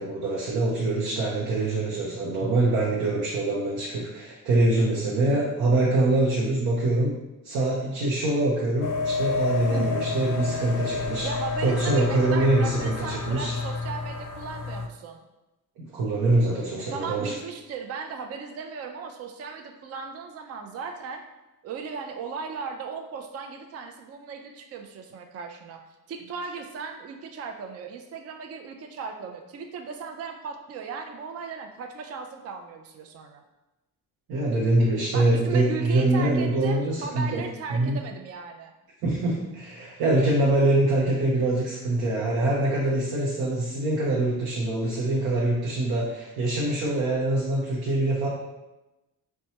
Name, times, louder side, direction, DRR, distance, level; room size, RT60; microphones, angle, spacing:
voice 1, 0.0-7.1 7.4-11.3 11.6-13.5 15.8-17.3 34.3-37.4 37.7-38.0 39.0-48.3, right 2 dB, 90° right, -4 dB, 0.7 m, -24 dB
sound 1, 8.8-14.9, left 4 dB, 60° left, 0.5 m, -29 dB
voice 2, 11.2-15.2 16.9-21.2 21.6-25.8 26.1-33.4 35.1-38.7, right 5 dB, 45° right, 5 dB, 0.4 m, -37 dB
4.2 x 2.2 x 2.8 m, 1.0 s
cardioid pair, 90°, 35 cm